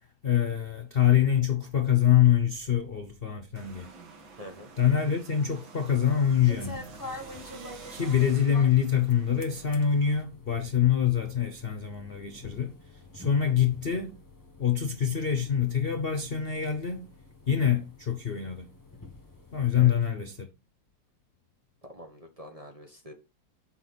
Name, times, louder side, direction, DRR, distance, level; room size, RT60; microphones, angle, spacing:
voice 1, 0.2-3.9 4.8-6.9 7.9-12.8 13.1-14.2 14.6-17.1 17.5-18.7 19.5-20.5, left 9 dB, 65° left, 0.5 m, -25 dB
sound 1, 3.5-10.2, right 4 dB, 70° right, 2.3 m, -49 dB
voice 2, 4.3-4.7 13.4-13.6 19.7-19.9 21.8-23.1, equal, 20° right, 1.0 m, -45 dB
sound 2, 6.1-19.9, left 2 dB, 15° left, 0.8 m, -47 dB
7.9 x 5.9 x 4.0 m
omnidirectional pair, 2.3 m